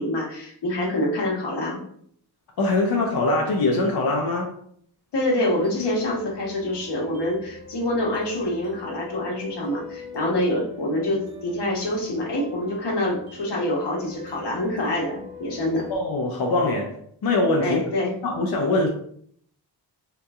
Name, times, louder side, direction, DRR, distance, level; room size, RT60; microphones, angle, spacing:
voice 1, 0.0-1.8 5.1-15.9 17.6-18.1, left 1 dB, 90° left, 1.0 m, -26 dB
voice 2, 2.6-4.5 15.9-17.8 18.2-18.9, left 2 dB, 65° left, 0.6 m, -23 dB
sound 1, 5.4-16.0, left 3 dB, 65° right, 0.9 m, -43 dB
3.7 x 2.9 x 2.3 m
wide cardioid pair, 130°, 40 cm